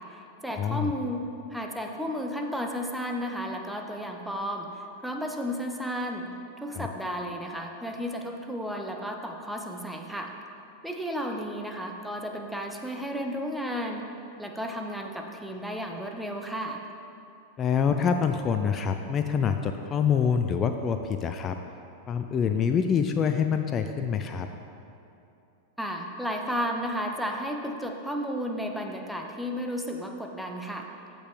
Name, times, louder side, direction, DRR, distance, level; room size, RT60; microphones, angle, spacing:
voice 1, 0.0-6.3 6.6-10.3 10.8-14.1 14.4-16.8 25.8-30.9, equal, ahead, 2 dB, 0.7 m, -33 dB
voice 2, 0.6-0.9 6.7-6.9 17.6-21.6 22.1-24.5, left 7 dB, 25° left, 7 dB, 0.4 m, -26 dB
14.5 x 5.3 x 3.1 m, 2.8 s
figure-of-eight pair, 90°, 0 cm